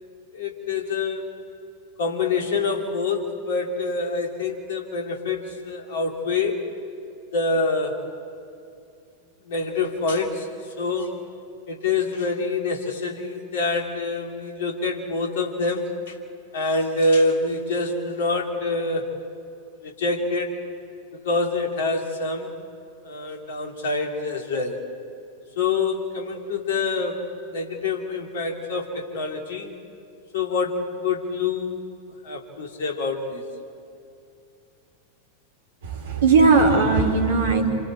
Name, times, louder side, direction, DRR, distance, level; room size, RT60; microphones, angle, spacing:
voice 1, 0.3-1.3 2.0-6.6 7.3-8.0 9.4-10.5 10.8-11.1 11.7-16.2 16.5-19.1 19.8-20.6 21.1-22.5 23.0-24.8 25.6-29.7 30.3-31.9 32.2-33.4, left 3 dB, 60° left, 2 dB, 3.0 m, -26 dB
voice 2, 35.8-37.7, right 4 dB, 60° right, 3 dB, 3.5 m, -18 dB
28.0 x 28.0 x 4.3 m, 2.6 s
figure-of-eight pair, 90°, 0 cm